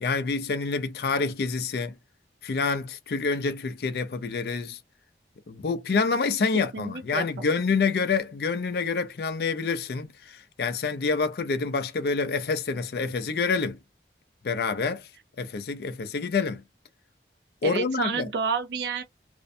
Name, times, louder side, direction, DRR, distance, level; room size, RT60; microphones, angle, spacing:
voice 1, 0.0-2.0 2.4-4.8 5.5-13.8 14.4-15.1 15.4-16.6 17.6-18.3, left 4 dB, 60° left, 0.4 m, -27 dB
voice 2, 6.7-7.5 17.6-19.0, right 5 dB, 70° right, 0.4 m, -30 dB
2.5 x 2.1 x 2.5 m
head